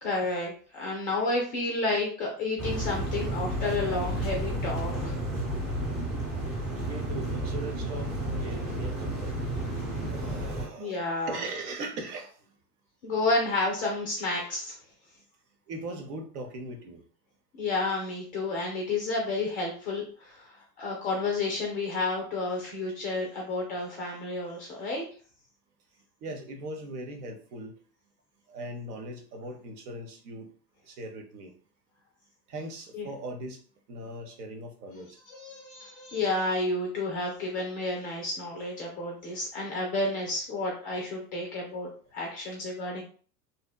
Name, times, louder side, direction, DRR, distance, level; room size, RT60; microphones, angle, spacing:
voice 1, 0.0-5.1 10.8-11.4 13.0-14.7 17.6-25.0 32.9-33.1 35.3-43.0, left 2 dB, 20° left, -1 dB, 0.3 m, -31 dB
sound 1, 2.6-10.7, right 1 dB, ahead, 0.9 m, -32 dB
voice 2, 6.9-9.3 10.0-12.3 15.7-17.0 26.2-27.7 28.5-30.5 30.8-31.5 32.5-33.6 33.9-35.2, right 2 dB, 70° right, 4 dB, 0.8 m, -39 dB
2.7 x 2.0 x 2.2 m, 0.43 s
hypercardioid pair, 100°, 48 cm